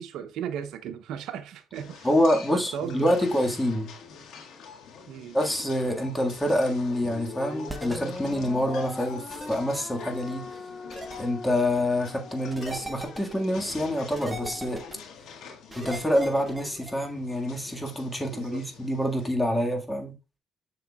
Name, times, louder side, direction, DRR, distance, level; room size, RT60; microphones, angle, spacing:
voice 1, 0.0-2.1 2.5-3.3 5.1-5.4 18.3-18.6, right 8 dB, 85° right, 0.7 m, -36 dB
sound 1, 1.7-19.3, left 5 dB, 85° left, 1.7 m, -46 dB
voice 2, 2.0-3.9 5.3-10.4 11.2-14.8 15.8-20.1, left 1 dB, 10° left, 1.7 m, -26 dB
sound 2, 7.0-13.6, left 3 dB, 30° left, 1.1 m, -41 dB
sound 3, 7.7-8.0 9.3-9.6 10.9-11.2 12.5-13.3 14.1-14.9 15.7-16.9, right 1 dB, 15° right, 1.1 m, -38 dB
6.8 x 6.7 x 2.3 m
cardioid pair, 90°, 0 cm